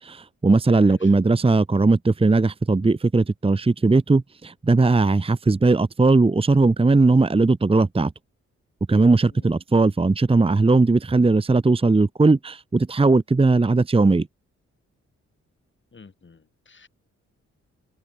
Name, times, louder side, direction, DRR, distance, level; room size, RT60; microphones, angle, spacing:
voice 1, 0.0-8.1 8.9-14.3, right 3 dB, 20° right, 1.0 m, -18 dB
voice 2, 0.8-1.1 9.3-9.6 15.9-16.9, left 4 dB, 40° left, 7.8 m, -49 dB
cardioid pair, 70°, 29 cm